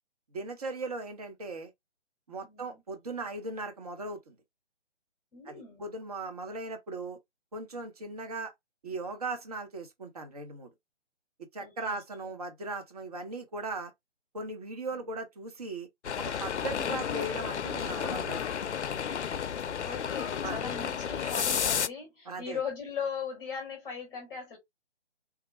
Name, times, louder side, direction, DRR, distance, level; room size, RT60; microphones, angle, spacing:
voice 1, 0.3-1.7 2.3-4.4 5.5-7.2 7.5-8.5 8.8-10.7 11.5-13.9 14.3-15.9 16.2-18.7 20.4-20.6 21.2-21.4 22.3-22.6, right 2 dB, 35° right, 0.8 m, -38 dB
voice 2, 2.4-2.8 5.3-5.9 11.6-12.0 12.2-12.3 14.9-15.2 19.8-24.6, left 6 dB, 10° left, 1.0 m, -39 dB
sound 1, 16.0-21.9, left 7 dB, 75° left, 0.5 m, -32 dB
3.6 x 2.1 x 3.1 m
figure-of-eight pair, 150°, 35 cm